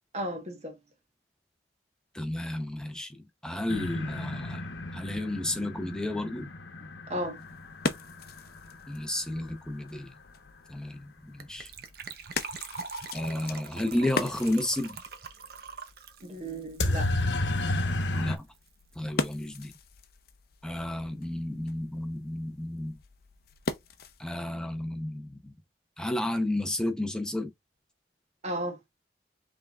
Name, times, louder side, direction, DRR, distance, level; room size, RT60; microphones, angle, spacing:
voice 1, 0.1-0.8 7.1-7.4 16.2-17.1 28.4-28.8, right 1 dB, 35° right, 1.3 m, -34 dB
voice 2, 2.1-6.5 8.9-10.1 10.7-11.7 13.1-15.0 18.1-18.5 19.0-19.7 20.6-23.0 24.2-25.5 26.0-27.5, left 1 dB, 5° left, 0.7 m, -32 dB
sound 1, 3.7-9.4 16.8-18.4, left 2 dB, 85° left, 0.9 m, -32 dB
sound 2, 7.2-24.4, left 3 dB, 55° left, 0.6 m, -40 dB
Gurgling / Trickle dribble / Fill (with liquid), 11.4-17.6 17.9-18.0 18.2-18.4 18.7-18.8, right 5 dB, 60° right, 0.8 m, -43 dB
5.7 x 3.6 x 2.4 m
head